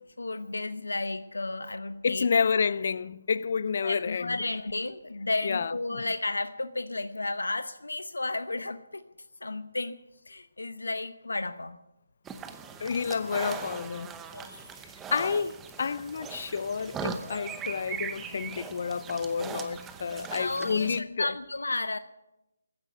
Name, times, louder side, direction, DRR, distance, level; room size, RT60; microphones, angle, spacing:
voice 1, 0.2-2.3 3.8-9.0 9.4-10.0 10.3-11.8 14.3-14.7 20.3-22.0, left 2 dB, 90° left, 0.8 m, -33 dB
voice 2, 2.0-4.3 5.4-6.0 12.8-14.1 15.1-21.3, left 5 dB, 50° left, 0.5 m, -29 dB
sound 1, 12.2-21.0, right 6 dB, 10° right, 0.8 m, -40 dB
15.0 x 9.0 x 9.3 m
figure-of-eight pair, 155°, 0 cm